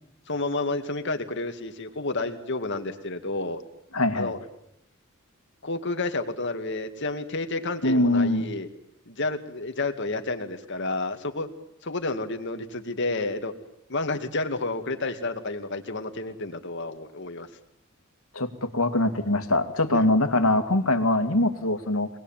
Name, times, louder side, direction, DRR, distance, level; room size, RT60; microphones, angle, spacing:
voice 1, 0.3-3.6 4.1-4.4 5.6-8.7 9.1-11.5 11.8-13.5 13.9-17.5 19.9-20.0, left 2 dB, 60° left, 6 dB, 2.4 m, -30 dB
voice 2, 3.9-4.3 7.8-8.5 18.3-22.1, left 1 dB, 90° left, 7 dB, 2.4 m, -23 dB
25.0 x 20.0 x 9.0 m, 0.79 s
head